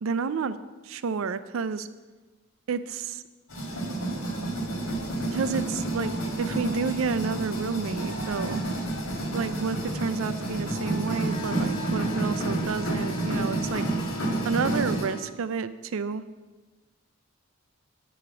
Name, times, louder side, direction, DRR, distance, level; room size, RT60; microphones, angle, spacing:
voice 1, 0.0-0.6 0.8-1.9 2.7-3.2 5.3-8.6 9.3-13.9 14.4-16.2, right 5 dB, 75° right, 13 dB, 0.4 m, -30 dB
sound 1, 3.5-15.1, right 2 dB, 85° left, 1.9 m, -30 dB
sound 2, 11.2-15.3, right 1 dB, 25° left, 0.7 m, -40 dB
8.9 x 5.0 x 6.9 m, 1.3 s
head